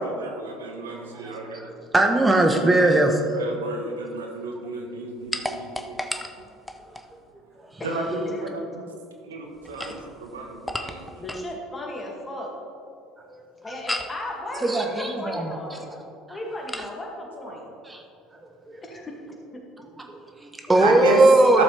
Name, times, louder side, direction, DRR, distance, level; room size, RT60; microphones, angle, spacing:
voice 1, 0.0-1.7 2.6-2.9 3.3-6.0 7.8-8.2 8.5-8.6 9.3-11.1 20.8-21.2 21.5-21.6, right 3 dB, 85° right, 2 dB, 1.1 m, -31 dB
voice 2, 1.1-3.2 13.3-13.4 14.6-15.6 17.9-18.0 18.7-18.8 20.1-21.6, right 2 dB, 15° right, 3 dB, 1.1 m, -20 dB
sound 1, 5.3-7.1 9.6-11.5 13.9-14.2 16.7-16.9, left 1 dB, 10° left, 0.6 m, -33 dB
voice 3, 7.8-8.6 11.2-12.5 13.6-15.9 16.3-17.7 18.8-19.2 19.5-19.6 20.7-20.9, left 1 dB, 25° left, -1 dB, 2.3 m, -35 dB
12.5 x 6.9 x 3.4 m, 2.5 s
hypercardioid pair, 70°, 0 cm